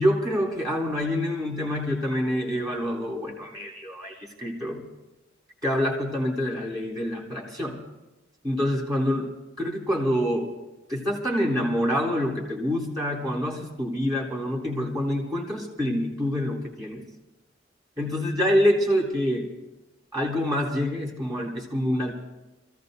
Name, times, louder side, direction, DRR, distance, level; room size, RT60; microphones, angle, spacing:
voice 1, 0.0-4.8 5.6-7.8 8.4-9.3 9.6-10.5 10.9-17.0 18.0-19.5 20.1-22.1, equal, 20° right, -2 dB, 3.5 m, -26 dB
28.0 x 15.5 x 2.7 m, 1.0 s
head